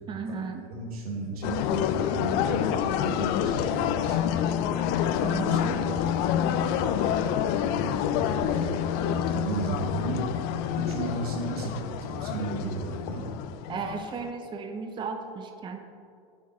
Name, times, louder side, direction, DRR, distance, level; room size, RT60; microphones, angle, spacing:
voice 1, 0.1-0.7 5.2-5.9 13.7-15.8, right 5 dB, 25° right, 6 dB, 0.6 m, -35 dB
voice 2, 0.7-4.5 5.0-7.2 7.5-13.3, right 3 dB, 90° right, 0 dB, 1.5 m, -35 dB
sound 1, 1.4-14.3, left 9 dB, 55° left, 0.4 m, -28 dB
8.6 x 4.7 x 4.2 m, 2.4 s
hypercardioid pair, 100°, 19 cm